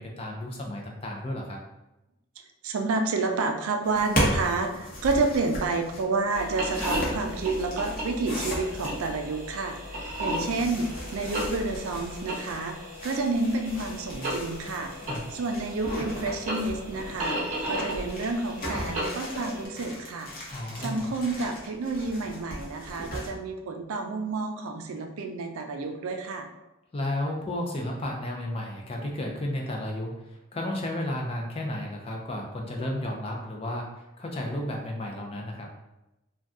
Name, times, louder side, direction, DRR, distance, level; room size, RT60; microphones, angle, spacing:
voice 1, 0.0-1.6 15.0-15.3 20.5-21.1 26.9-35.7, left 1 dB, 25° left, 0 dB, 0.4 m, -33 dB
voice 2, 2.6-9.8 10.2-12.8 13.0-14.9 15.3-20.3 20.8-26.5, right 3 dB, 80° right, 5 dB, 0.4 m, -29 dB
sound 1, 3.8-9.1 10.1-23.3, equal, 45° left, 0.8 m, -36 dB
sound 2, 6.3-19.7, equal, 35° right, 0.8 m, -35 dB
2.5 x 2.2 x 3.5 m, 0.97 s
head